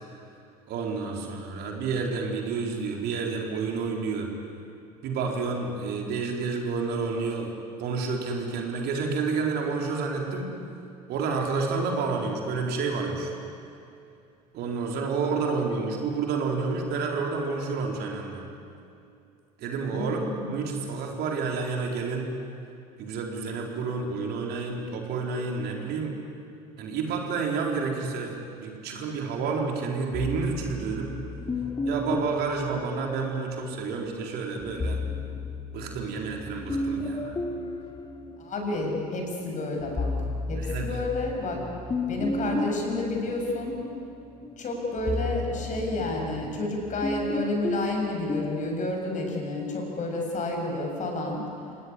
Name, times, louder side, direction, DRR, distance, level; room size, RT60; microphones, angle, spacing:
voice 1, 0.7-4.3 5.0-7.5 7.8-10.5 11.1-13.3 14.5-18.4 19.6-20.2 20.5-22.3 23.0-26.2 26.8-31.1 31.9-35.0 35.7-37.4 40.6-41.0, right 4 dB, 55° right, 1 dB, 4.3 m, -29 dB
voice 2, 19.9-20.5 38.4-40.1 40.5-41.6 42.1-43.8 44.6-51.4, left 2 dB, 40° left, 1 dB, 7.5 m, -30 dB
sound 1, 30.1-33.6 34.6-39.0 39.5-48.7, left 2 dB, 20° left, 2.3 m, -33 dB
27.5 x 18.5 x 10.0 m, 2.6 s
figure-of-eight pair, 65°, 20 cm